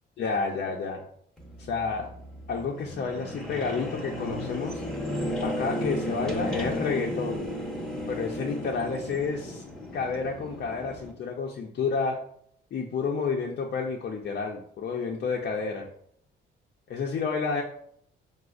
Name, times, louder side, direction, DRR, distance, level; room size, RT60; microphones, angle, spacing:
voice 1, 0.2-1.0 1.6-2.0 2.5-4.8 5.4-7.5 8.1-9.6 9.9-12.2 12.7-15.9 16.9-17.6, left 5 dB, 55° left, 0 dB, 0.5 m, -30 dB
sound 1, 1.4-11.1, left 1 dB, 5° left, 0.8 m, -34 dB
4.9 x 2.0 x 2.4 m, 0.66 s
cardioid pair, 90°, 20 cm